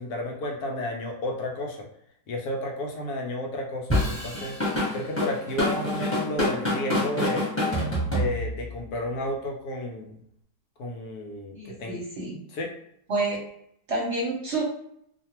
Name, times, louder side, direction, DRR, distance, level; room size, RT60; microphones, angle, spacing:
voice 1, 0.0-1.9 2.3-4.5 4.9-7.4 8.1-10.2 10.8-12.0 12.5-12.7, left 1 dB, 75° left, 1 dB, 1.1 m, -32 dB
Drum kit / Drum, 3.9-8.7, left 1 dB, 10° left, 1.1 m, -26 dB
voice 2, 11.5-12.4 13.1-13.4 13.9-14.6, right 2 dB, 50° right, -4 dB, 1.0 m, -29 dB
2.5 x 2.4 x 2.8 m, 0.72 s
omnidirectional pair, 1.7 m